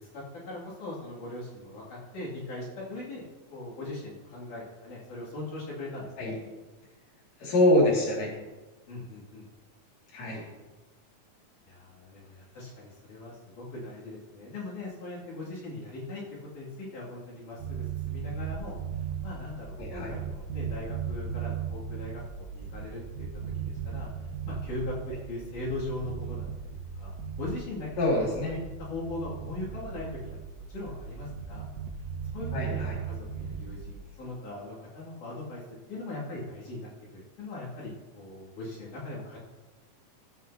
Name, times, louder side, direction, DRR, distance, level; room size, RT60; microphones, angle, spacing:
voice 1, 0.1-3.2 3.5-6.3 8.9-9.5 11.6-18.8 19.2-23.3 23.6-24.1 24.4-26.5 27.0-27.1 27.4-27.9 28.1-31.6 32.3-35.6 35.9-39.4, left 2 dB, 90° left, -6 dB, 4.0 m, -40 dB
voice 2, 7.4-8.3 10.1-10.4 19.8-20.1 28.0-28.5 32.5-32.9, left 1 dB, 65° left, -4 dB, 3.6 m, -25 dB
sound 1, 17.6-34.0, right 7 dB, 80° right, 2.2 m, -37 dB
18.0 x 8.1 x 2.8 m, 1.2 s
omnidirectional pair, 3.4 m